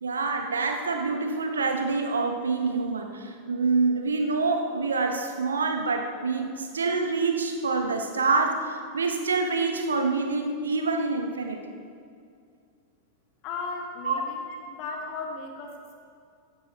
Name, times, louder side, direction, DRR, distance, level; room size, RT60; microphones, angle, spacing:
voice 1, 0.0-11.8 14.0-14.2, right 4 dB, 70° right, 5 dB, 1.2 m, -26 dB
voice 2, 13.4-14.4 14.7-16.0, left 3 dB, 40° left, 1 dB, 2.0 m, -36 dB
15.0 x 9.1 x 4.1 m, 2.3 s
figure-of-eight pair, 90°, 0 cm